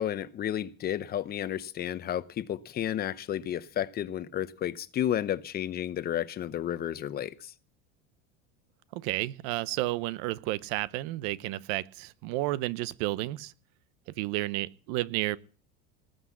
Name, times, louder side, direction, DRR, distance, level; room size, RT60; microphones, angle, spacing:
voice 1, 0.0-7.5, left 11 dB, 30° left, 0.8 m, -32 dB
voice 2, 8.9-13.5 14.2-15.4, right 17 dB, 65° right, 0.9 m, -31 dB
19.0 x 7.9 x 7.2 m
supercardioid pair, 130°, 29 cm